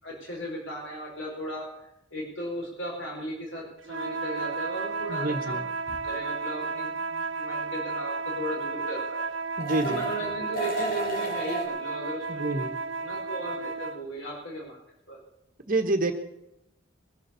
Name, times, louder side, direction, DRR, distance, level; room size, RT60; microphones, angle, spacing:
voice 1, 0.0-1.7 2.1-5.6 6.0-9.2 9.8-12.7 13.0-14.8 15.1-15.2, equal, 75° left, -2 dB, 4.7 m, -36 dB
sound 1, 3.8-14.0, right 4 dB, 80° right, 0.9 m, -33 dB
voice 2, 5.1-5.6 9.6-10.0 12.3-12.7 15.7-16.1, right 2 dB, 45° right, 6 dB, 1.4 m, -27 dB
sound 2, 5.9-6.0 9.6-10.3 10.5-11.7, right 2 dB, 50° left, 4.6 m, -32 dB
22.0 x 7.4 x 6.9 m, 0.87 s
head